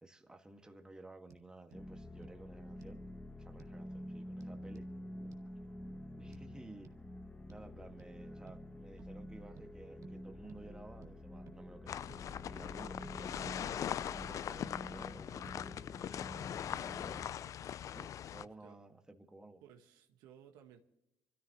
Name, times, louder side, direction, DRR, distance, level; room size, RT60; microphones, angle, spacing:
voice 1, 0.0-3.0 3.4-4.9 5.2-5.4 6.2-6.9 7.5-12.1 12.5-16.3 16.7-17.6 17.8-19.6, right 2 dB, 10° right, 5 dB, 1.8 m, -55 dB
sound 1, 1.3-1.4 1.7-1.8 2.2-2.4 2.8-3.0 3.6-3.8 4.4-4.9 5.3-5.5 6.3-6.5 6.8-7.0 7.5-7.7 8.0-8.1 8.5-8.6 9.0-9.2 9.6-9.7 10.0-10.2 10.5-10.6 11.0-11.1 11.5-11.6 12.1-12.2 12.6-12.7 13.0-13.2 13.4-13.6 13.9-14.3 14.7-14.8 15.2-15.6 16.3-16.4 16.7-16.9, right 7 dB, 55° right, 1.8 m, -58 dB
sound 2, 1.7-17.4, left 1 dB, 15° left, 1.2 m, -49 dB
sound 3, 11.9-18.4, left 10 dB, 55° left, 0.4 m, -41 dB
voice 2, 18.4-18.8 19.6-20.8, right 9 dB, 80° right, 5 dB, 1.5 m, -59 dB
25.5 x 14.0 x 3.0 m, 0.89 s
supercardioid pair, 70°, 7 cm